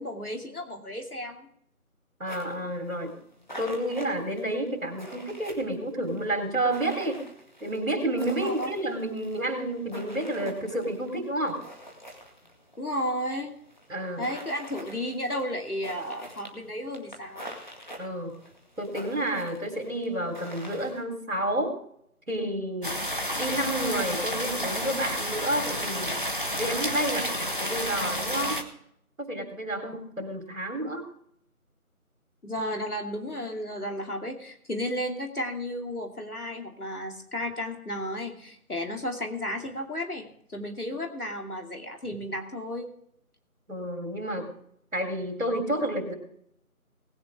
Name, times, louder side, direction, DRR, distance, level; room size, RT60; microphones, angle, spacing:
voice 1, 0.0-1.5 8.4-8.7 12.8-13.5 14.2-17.5 32.4-42.9, left 1 dB, 75° left, 3 dB, 2.8 m, -33 dB
voice 2, 2.2-3.1 3.6-7.2 7.6-11.6 13.9-14.3 18.0-18.4 18.8-21.7 22.3-23.0 23.4-26.2 26.5-28.6 29.2-31.0 43.7-44.5 44.9-46.1, right 1 dB, 60° right, 3 dB, 3.8 m, -30 dB
sound 1, 2.3-21.0, equal, 30° left, 2.0 m, -46 dB
sound 2, 22.8-28.6, equal, 35° right, 1.1 m, -30 dB
19.5 x 9.8 x 3.6 m, 0.69 s
figure-of-eight pair, 170°, 44 cm